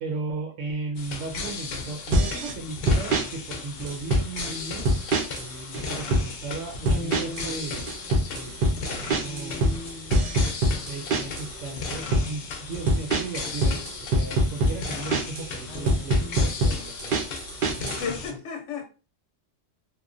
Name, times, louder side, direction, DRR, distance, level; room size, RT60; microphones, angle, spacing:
voice 1, 0.0-4.9 5.3-7.8 8.3-8.5 8.8-9.6 10.9-17.2 17.8-18.2, right 3 dB, 80° right, 1.0 m, -36 dB
sound 1, 1.0-18.3, left 4 dB, 60° left, 0.7 m, -36 dB
sound 2, 2.1-2.5 2.9-3.3 3.9-4.5 4.8-5.5 5.7-6.3 6.9-7.5 7.7-11.5 11.9-12.3 12.9-15.5 15.9-18.0, right 1 dB, 55° right, 0.6 m, -23 dB
sound 3, 5.8-5.9 6.7-11.4 15.7-16.5, left 1 dB, 30° left, 0.6 m, -42 dB
voice 2, 17.8-18.8, left 6 dB, 85° left, 0.9 m, -33 dB
2.9 x 2.1 x 2.4 m
omnidirectional pair, 1.3 m